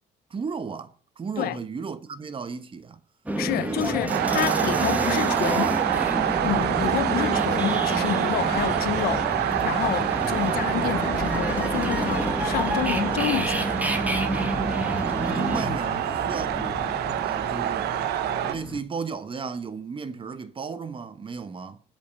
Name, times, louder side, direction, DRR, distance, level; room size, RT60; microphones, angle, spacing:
voice 1, 0.3-3.0 3.5-5.8 15.2-16.9 17.2-17.9 18.4-21.8, right 5 dB, 30° right, 1.2 m, -34 dB
sound 1, 3.3-15.6, right 1 dB, 10° right, 1.6 m, -29 dB
voice 2, 3.4-5.8 6.4-13.7, left 14 dB, 65° left, 0.6 m, -29 dB
sound 2, 4.1-18.5, right 11 dB, 75° right, 0.9 m, -27 dB
sound 3, 5.9-18.8, left 4 dB, 15° left, 0.9 m, -37 dB
7.6 x 5.5 x 7.4 m
cardioid pair, 110°, 17 cm